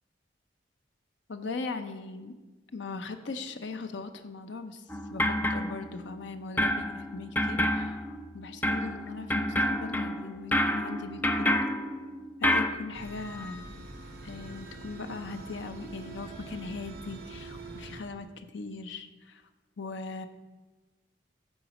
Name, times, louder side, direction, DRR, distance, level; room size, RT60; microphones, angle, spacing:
voice 1, 1.3-2.3 2.7-4.8 5.1-11.6 12.4-13.7 14.2-19.4 19.8-20.3, left 3 dB, 80° left, 9 dB, 0.6 m, -39 dB
sound 1, 4.9-6.2 6.6-12.7, left 1 dB, 10° left, 0.3 m, -29 dB
sound 2, 12.9-18.0, right 2 dB, 55° right, 1.0 m, -44 dB
9.2 x 4.0 x 5.9 m, 1.2 s
head